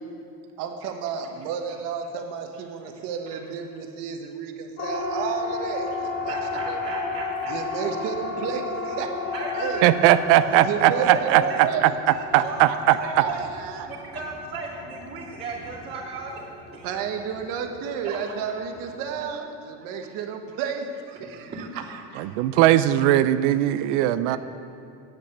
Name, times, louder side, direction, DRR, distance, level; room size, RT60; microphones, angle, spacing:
voice 1, 0.6-6.4 6.6-6.8 7.5-10.0 10.6-13.9 16.8-22.3 23.8-23.9, right 6 dB, 70° right, 5 dB, 1.3 m, -32 dB
Siren, 4.8-19.1, left 3 dB, 65° left, 2.7 m, -34 dB
voice 2, 6.3-7.8 9.3-11.6 12.4-12.6 12.9-13.4 13.8-16.9 18.0-18.2 21.5-21.6 24.3-24.4, right 3 dB, 30° right, -9 dB, 2.6 m, -36 dB
voice 3, 9.8-11.9 12.3-13.0 22.2-24.4, right 13 dB, 85° right, 13 dB, 0.5 m, -19 dB
8.9 x 8.7 x 7.2 m, 2.6 s
cardioid pair, 135°, 34 cm